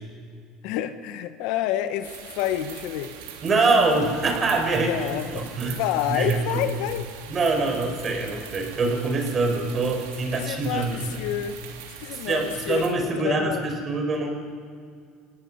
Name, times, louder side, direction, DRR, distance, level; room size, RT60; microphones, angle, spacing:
voice 1, 0.6-3.2 4.8-7.1 10.3-11.6 12.0-13.6, left 11 dB, 75° left, 1.2 m, -29 dB
sound 1, 2.0-12.9, right 8 dB, 85° right, 2.7 m, -42 dB
voice 2, 3.4-5.0 5.4-5.8 6.1-6.6 7.3-11.2 12.1-14.3, right 3 dB, 35° right, 5.4 m, -24 dB
30.0 x 17.5 x 5.7 m
supercardioid pair, 90°, 0 cm